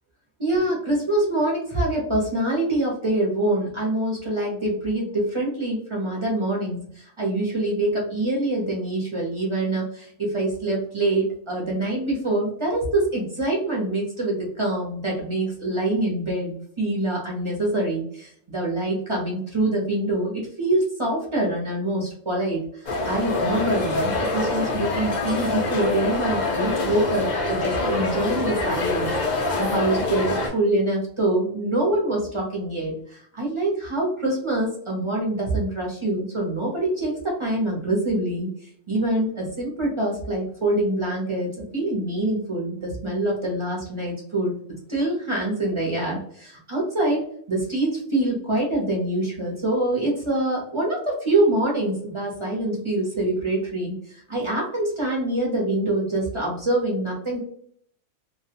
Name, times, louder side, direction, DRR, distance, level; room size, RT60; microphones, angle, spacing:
voice 1, 0.4-38.5 38.9-44.5 44.9-57.4, right 1 dB, 35° right, -3 dB, 0.5 m, -25 dB
sound 1, 22.9-30.5, left 3 dB, 70° left, 0.4 m, -25 dB
2.3 x 2.2 x 2.8 m, 0.63 s
omnidirectional pair, 1.5 m